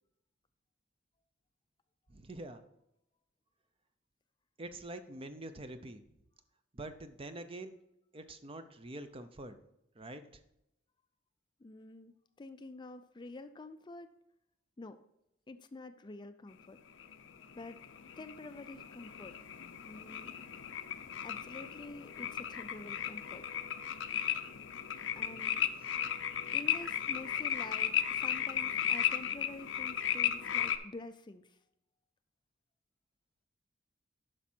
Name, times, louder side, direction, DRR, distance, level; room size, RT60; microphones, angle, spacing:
voice 1, 2.1-2.6 4.6-6.0 6.7-7.8 8.1-9.6 10.0-10.2, right 1 dB, 30° right, 10 dB, 0.6 m, -45 dB
voice 2, 11.6-14.1 14.8-15.0 15.5-16.8 17.5-17.8 18.2-19.4 19.9-20.3 21.2-23.4 25.2-25.7 26.5-31.6, left 2 dB, 25° left, 10 dB, 0.4 m, -48 dB
sound 1, 17.0-30.8, left 9 dB, 80° left, 0.6 m, -35 dB
10.0 x 6.1 x 4.4 m, 0.82 s
head